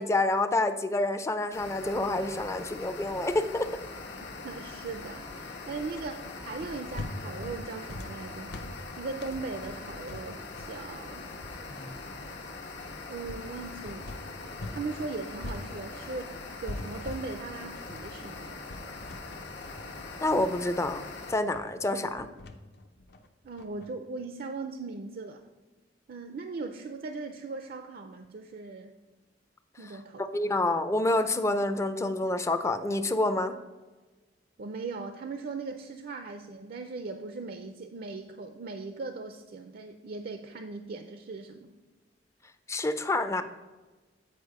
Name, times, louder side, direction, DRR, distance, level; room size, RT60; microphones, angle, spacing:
voice 1, 0.0-3.7 11.7-11.9 20.2-21.0 21.3-22.3 30.2-33.6 42.7-43.4, left 2 dB, 15° left, 10 dB, 0.4 m, -28 dB
sound 1, 1.5-21.3, left 3 dB, 80° left, 1.1 m, -42 dB
voice 2, 4.4-8.5 9.0-11.3 13.1-14.1 14.7-18.7 23.4-25.4 26.1-28.9 29.8-30.6 34.6-41.7, right 3 dB, 55° right, 7 dB, 0.4 m, -39 dB
sound 2, 6.6-14.9 15.1-23.9, left 1 dB, 60° left, 0.6 m, -43 dB
8.2 x 4.6 x 4.8 m, 1.2 s
head